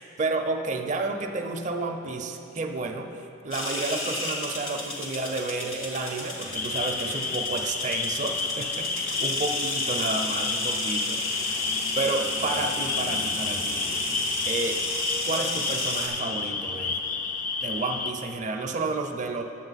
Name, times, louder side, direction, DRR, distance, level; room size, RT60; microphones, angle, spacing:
voice 1, 0.0-3.1 3.4-11.7 11.9-13.9 14.4-14.8 15.2-17.0 17.6-19.4, right 3 dB, 40° right, 5 dB, 0.5 m, -31 dB
sound 1, 3.5-16.1, left 1 dB, 75° left, 1.6 m, -33 dB
sound 2, 6.5-18.1, left 4 dB, 40° left, 0.4 m, -30 dB
9.7 x 7.5 x 4.0 m, 2.7 s
head